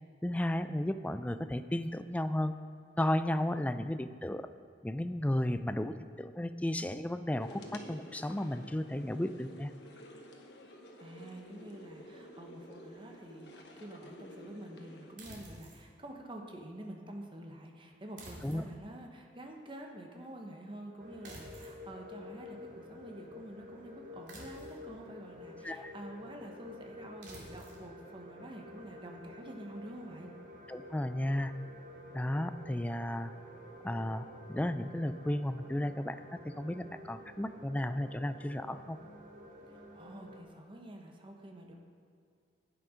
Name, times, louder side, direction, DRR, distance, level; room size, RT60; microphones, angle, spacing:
voice 1, 0.2-2.5 3.0-4.5 4.8-9.7 18.4-18.6 25.6-25.9 30.7-31.5 32.1-33.3 33.8-36.2 36.4-39.0, left 1 dB, 10° left, 11 dB, 0.3 m, -34 dB
sound 1, 7.4-15.1, left 1 dB, 70° left, 1.2 m, -51 dB
voice 2, 11.0-30.3 39.7-41.7, right 1 dB, 30° right, 2 dB, 1.1 m, -48 dB
sound 2, 15.2-15.8 18.2-18.9 21.2-21.8 24.3-24.9 27.2-27.8, right 1 dB, 90° right, 2.5 m, -50 dB
sound 3, 21.0-40.4, left 1 dB, 50° right, 1.4 m, -50 dB
11.0 x 9.3 x 5.1 m, 2.2 s
head